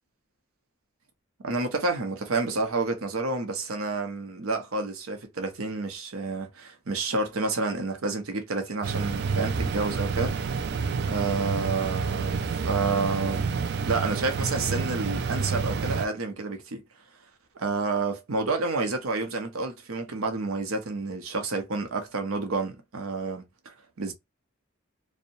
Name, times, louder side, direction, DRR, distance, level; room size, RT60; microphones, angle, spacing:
voice 1, 1.4-10.3 11.1-13.5 13.9-16.8 17.6-24.1, right 3 dB, 85° right, 0.7 m, -29 dB
sound 1, 8.8-16.1, right 5 dB, 55° right, 0.3 m, -29 dB
2.6 x 2.1 x 2.6 m
head